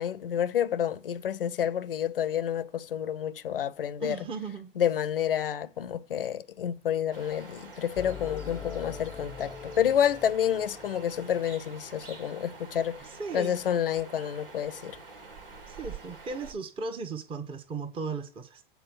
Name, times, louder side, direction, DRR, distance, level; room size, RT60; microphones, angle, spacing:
voice 1, 0.0-4.2 4.8-15.0, left 9 dB, 70° left, 0.7 m, -29 dB
voice 2, 4.0-4.7 13.2-13.6 15.7-18.6, right 4 dB, 20° right, 1.1 m, -36 dB
sound 1, 7.1-16.5, right 4 dB, 70° right, 1.9 m, -47 dB
sound 2, 8.0-12.0, left 6 dB, 10° left, 0.5 m, -43 dB
8.2 x 4.5 x 7.2 m
figure-of-eight pair, 95°, 29 cm